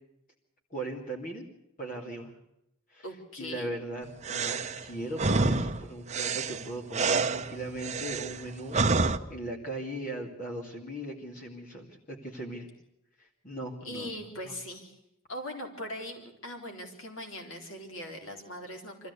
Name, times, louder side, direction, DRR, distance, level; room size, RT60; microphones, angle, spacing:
voice 1, 0.7-1.5 1.8-2.3 2.9-3.1 3.4-12.7 13.2-14.1 14.5-14.6, right 1 dB, 40° left, 0 dB, 2.4 m, -39 dB
voice 2, 3.0-3.7 13.8-15.0 15.3-19.1, left 1 dB, 75° left, 3 dB, 4.0 m, -40 dB
sound 1, 4.2-9.2, right 3 dB, 35° right, 0.8 m, -28 dB
25.0 x 15.0 x 8.3 m, 0.84 s
head